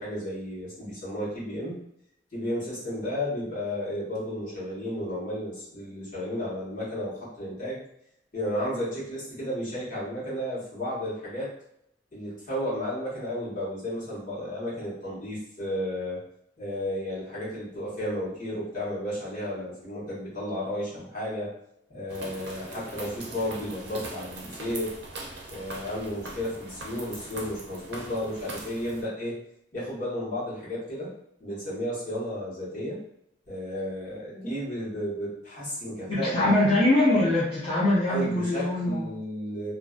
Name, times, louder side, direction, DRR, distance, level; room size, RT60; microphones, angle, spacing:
voice 1, 0.0-1.8 2.3-7.8 8.3-11.5 12.1-16.2 16.6-21.5 21.9-24.9 25.5-29.4 29.7-31.1 31.4-33.0 33.5-36.8 38.1-39.7, equal, 45° left, -8 dB, 1.2 m, -33 dB
sound 1, 22.1-29.0, right 2 dB, 75° right, 0.6 m, -41 dB
voice 2, 36.1-39.0, left 1 dB, 30° left, -11 dB, 0.7 m, -23 dB
2.5 x 2.2 x 2.4 m, 0.75 s
head